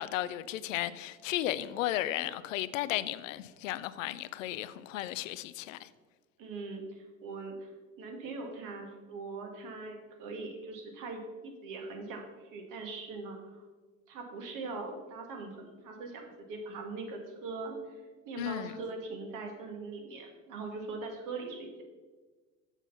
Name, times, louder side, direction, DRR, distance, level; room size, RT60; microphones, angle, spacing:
voice 1, 0.0-5.9 18.4-18.7, left 14 dB, 80° left, 0.5 m, -34 dB
voice 2, 6.4-7.7 8.0-13.6 14.1-17.8 18.3-21.8, right 3 dB, 55° right, 2.0 m, -41 dB
7.3 x 5.9 x 5.5 m
hypercardioid pair, 80°, 38 cm